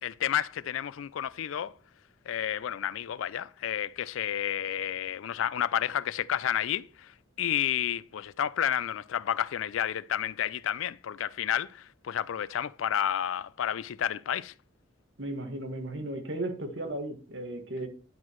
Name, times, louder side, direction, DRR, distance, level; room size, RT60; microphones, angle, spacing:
voice 1, 0.0-1.7 2.3-7.1 7.4-14.5, left 10 dB, 80° left, 0.4 m, -31 dB
voice 2, 15.2-17.9, right 1 dB, 60° right, 1.7 m, -35 dB
10.5 x 6.1 x 3.0 m
head